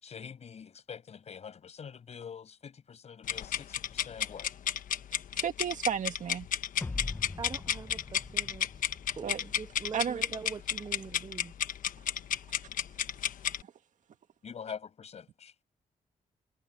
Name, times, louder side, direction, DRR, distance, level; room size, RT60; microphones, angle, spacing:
voice 1, 0.0-4.5 14.4-15.5, left 7 dB, 50° left, 6.7 m, -45 dB
sound 1, 3.2-13.6, left 9 dB, 70° left, 1.2 m, -32 dB
voice 2, 5.1-6.5 9.2-9.4 9.9-10.2, right 8 dB, 60° right, 2.2 m, -33 dB
sound 2, 6.8-10.1, left 3 dB, 15° left, 1.0 m, -42 dB
voice 3, 7.4-8.9 9.2-11.5, right 5 dB, 30° right, 0.6 m, -43 dB
cardioid pair, 125°, 14 cm